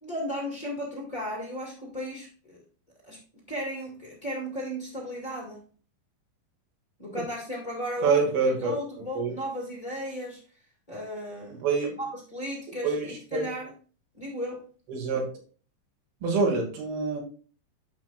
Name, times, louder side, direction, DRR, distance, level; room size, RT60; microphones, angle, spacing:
voice 1, 0.0-2.6 3.0-5.6 7.0-8.2 8.6-10.4 10.9-11.6 12.0-13.7 14.1-14.6, equal, 15° left, -2 dB, 1.2 m, -35 dB
voice 2, 8.0-8.7 9.2-9.4 11.5-11.9 12.8-13.5 14.9-15.3 16.2-17.2, right 4 dB, 90° right, 1 dB, 4.0 m, -26 dB
13.0 x 4.8 x 2.5 m, 0.39 s
omnidirectional pair, 4.2 m